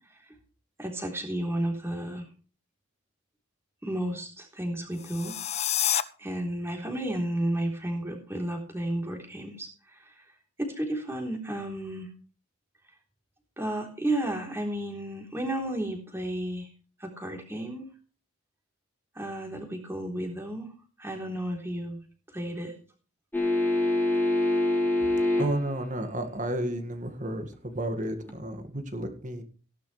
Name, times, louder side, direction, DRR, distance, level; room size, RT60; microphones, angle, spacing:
voice 1, 0.8-2.3 3.8-5.4 6.2-10.2 10.6-12.1 13.6-16.7 17.0-17.9 19.2-20.7 21.0-22.1 22.3-22.7, right 1 dB, 10° right, 2 dB, 3.6 m, -32 dB
sound 1, 4.9-6.0, left 10 dB, 30° left, 0.6 m, -28 dB
sound 2, 23.3-25.7 28.3-28.4, left 1 dB, 10° left, 3.3 m, -25 dB
voice 2, 25.4-29.4, right 1 dB, 35° right, 7 dB, 1.9 m, -32 dB
17.0 x 11.5 x 3.3 m, 0.38 s
head